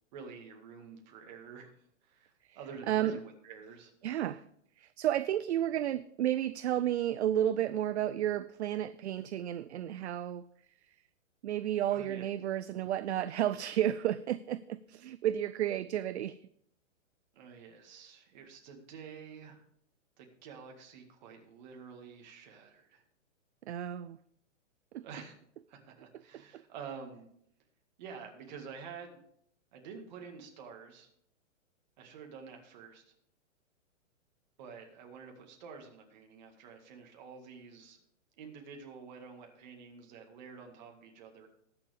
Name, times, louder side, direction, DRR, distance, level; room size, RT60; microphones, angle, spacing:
voice 1, 0.1-1.7 2.0-3.9 11.9-12.3 17.3-19.6 20.2-23.0 25.0-25.3 25.7-27.2 28.0-29.2 29.7-31.1 32.0-33.1 34.6-38.0 38.4-41.5, right 6 dB, 35° right, 2 dB, 2.0 m, -49 dB
voice 2, 2.9-3.2 4.0-4.4 4.8-10.4 11.4-16.4 23.7-24.2 24.9-25.0 26.5-26.6, right 11 dB, 60° right, 14 dB, 0.5 m, -32 dB
20.0 x 6.9 x 3.5 m, 0.70 s
hypercardioid pair, 165°, 39 cm